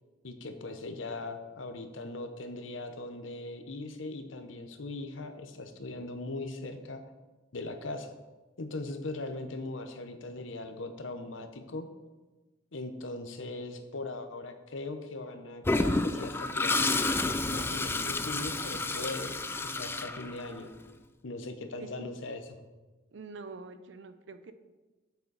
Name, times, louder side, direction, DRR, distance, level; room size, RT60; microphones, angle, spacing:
voice 1, 0.2-7.0 7.5-8.1 8.6-11.9 12.7-19.3 19.6-20.7 21.2-22.6, left 2 dB, 80° left, 8 dB, 0.9 m, -39 dB
Toilet flush, 15.6-20.7, left 2 dB, 10° left, 0.3 m, -30 dB
voice 2, 21.8-22.1 23.1-24.5, right 3 dB, 65° right, 10 dB, 0.6 m, -45 dB
8.0 x 6.7 x 4.0 m, 1.2 s
head